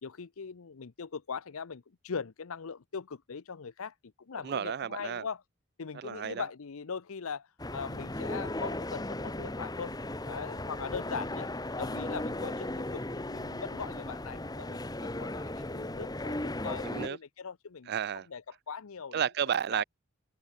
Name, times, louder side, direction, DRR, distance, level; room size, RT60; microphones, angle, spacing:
voice 1, 0.0-5.4 5.8-9.9 10.3-11.5 11.8-17.9 18.3-19.2 19.7-19.8, left 6 dB, 75° left, 0.6 m, -41 dB
voice 2, 4.4-5.3 5.9-6.4 16.8-17.2 17.9-18.3 19.1-19.8, right 8 dB, 45° right, 0.3 m, -32 dB
sound 1, 7.6-17.1, left 1 dB, 15° left, 1.2 m, -36 dB
head